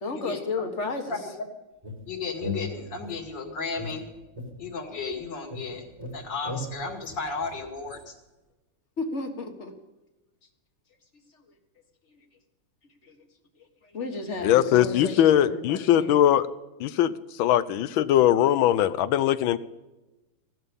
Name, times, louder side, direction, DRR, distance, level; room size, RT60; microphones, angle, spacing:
voice 1, 0.0-1.2 9.0-9.7 13.0-13.2 13.8-16.2, left 3 dB, 35° left, 5 dB, 1.8 m, -33 dB
sound 1, 1.8-3.3 3.8-5.2 5.5-8.0, left 2 dB, 15° right, 1.9 m, -38 dB
voice 2, 2.1-4.1 4.6-5.8 6.1-8.1, left 4 dB, 55° left, 2 dB, 2.8 m, -34 dB
voice 3, 14.4-16.5 16.8-17.1 17.4-19.6, left 11 dB, 70° left, 15 dB, 1.4 m, -21 dB
16.0 x 12.5 x 5.4 m, 1.1 s
omnidirectional pair, 2.4 m